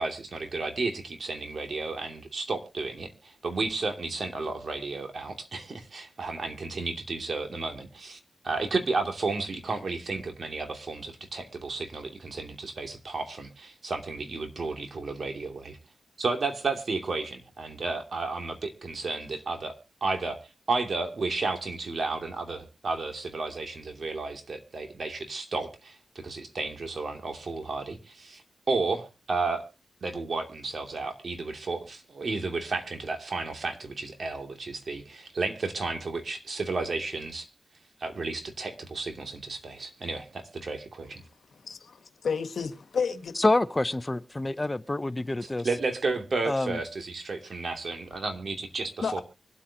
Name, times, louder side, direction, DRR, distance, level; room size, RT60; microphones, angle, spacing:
voice 1, 0.0-15.8 16.2-20.4 20.7-28.4 28.7-29.6 30.0-37.5 38.0-41.2 45.4-49.2, right 3 dB, 65° right, 2.7 m, -32 dB
voice 2, 41.5-43.4 49.0-49.2, left 6 dB, 75° left, 1.3 m, -31 dB
voice 3, 43.4-45.7 46.4-46.8, left 2 dB, 25° left, 0.6 m, -27 dB
24.5 x 8.5 x 2.9 m
cardioid pair, 55°, 0 cm